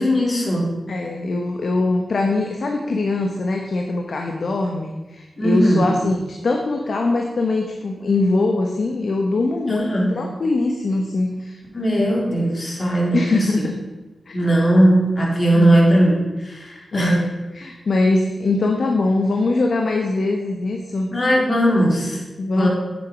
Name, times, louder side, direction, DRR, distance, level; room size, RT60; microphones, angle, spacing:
voice 1, 0.0-0.7 5.4-5.9 9.7-10.2 11.7-13.7 14.3-17.2 21.1-22.2 22.5-22.7, right 1 dB, 45° left, -2 dB, 3.6 m, -18 dB
voice 2, 0.9-11.6 13.1-13.8 14.3-14.4 15.5-15.8 16.9-21.1 22.4-22.7, left 2 dB, 70° left, 2 dB, 1.1 m, -22 dB
10.0 x 7.4 x 5.1 m, 1.1 s
cardioid pair, 45°, 0 cm